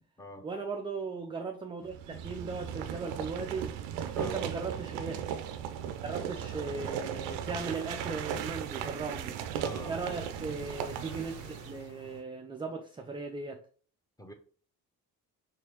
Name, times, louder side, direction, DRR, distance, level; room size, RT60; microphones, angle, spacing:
voice 1, 0.4-3.8 4.2-5.2 6.0-9.4 9.9-13.6, right 4 dB, 10° right, 0.3 m, -38 dB
sound 1, 1.9-11.9, right 8 dB, 65° right, 0.5 m, -37 dB
voice 2, 4.1-4.5 9.6-10.0 14.2-14.3, equal, 10° left, 0.8 m, -45 dB
sound 2, 5.7-12.2, right 1 dB, 40° left, 1.5 m, -55 dB
4.5 x 2.9 x 2.9 m
figure-of-eight pair, 40°, 46 cm